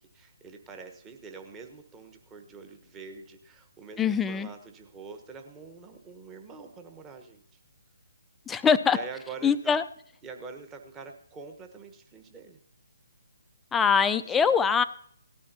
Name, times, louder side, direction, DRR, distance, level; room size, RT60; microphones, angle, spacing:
voice 1, 0.0-7.6 8.9-9.8 10.2-12.6 14.2-14.5, right 5 dB, 15° right, 5 dB, 1.2 m, -45 dB
voice 2, 4.0-4.5 8.5-9.0 9.4-9.8 13.7-14.8, left 6 dB, 10° left, 11 dB, 0.4 m, -23 dB
18.0 x 12.5 x 2.8 m, 0.65 s
figure-of-eight pair, 140°, 0 cm